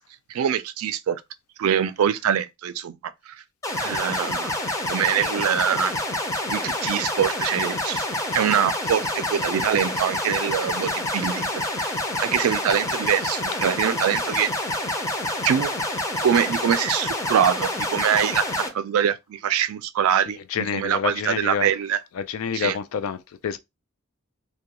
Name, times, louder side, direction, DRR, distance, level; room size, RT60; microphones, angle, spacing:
voice 1, 0.3-1.2 1.6-3.0 3.3-3.4 3.8-4.5 4.9-5.9 6.5-8.1 8.3-11.9 12.2-14.5 15.4-15.7 16.2-22.0 22.5-22.8, right 9 dB, 85° right, 0.3 m, -24 dB
sound 1, 3.6-18.7, left 1 dB, 15° left, 0.5 m, -27 dB
voice 2, 20.5-21.7 22.1-23.6, left 7 dB, 75° left, 0.3 m, -28 dB
2.2 x 2.2 x 2.8 m
head